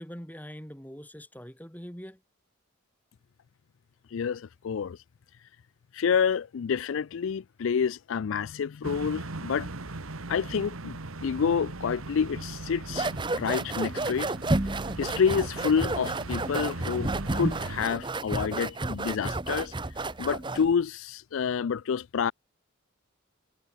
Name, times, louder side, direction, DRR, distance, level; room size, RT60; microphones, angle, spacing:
voice 1, 0.0-2.2, equal, 10° left, 3.0 m, -43 dB
voice 2, 4.1-5.0 5.9-9.7 10.3-11.0 11.2-14.3 15.0-19.7 20.0-22.3, left 6 dB, 70° left, 0.4 m, -28 dB
sound 1, 8.8-17.8, right 2 dB, 80° right, 1.6 m, -39 dB
sound 2, 12.9-20.7, right 2 dB, 20° right, 0.8 m, -31 dB
head